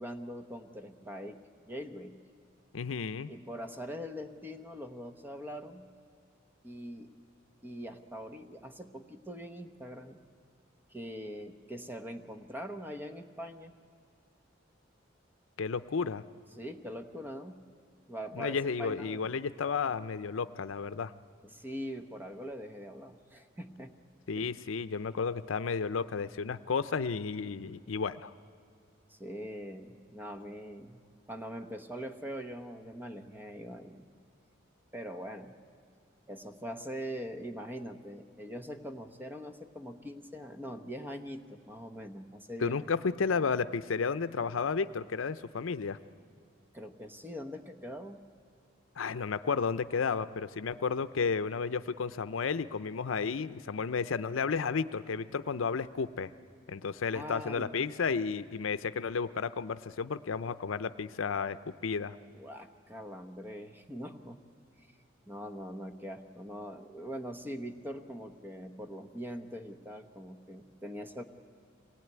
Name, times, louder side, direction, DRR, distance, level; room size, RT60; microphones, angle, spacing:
voice 1, 0.0-1.4 1.6-2.2 3.3-5.9 6.6-7.1 7.6-10.2 10.9-13.7 16.6-17.7 18.1-19.4 21.4-24.0 24.4-24.5 29.1-31.0 31.3-34.1 34.9-35.5 36.3-42.9 46.7-48.2 57.1-57.8 62.3-64.4 64.8-65.0 65.3-71.2, equal, 10° right, 6 dB, 0.9 m, -42 dB
voice 2, 2.7-3.3 15.6-16.2 18.4-21.1 24.3-28.3 42.6-46.0 49.0-56.3 56.7-61.6 61.8-62.2, left 5 dB, 85° left, 13 dB, 0.6 m, -32 dB
25.0 x 18.5 x 9.4 m, 2.1 s
head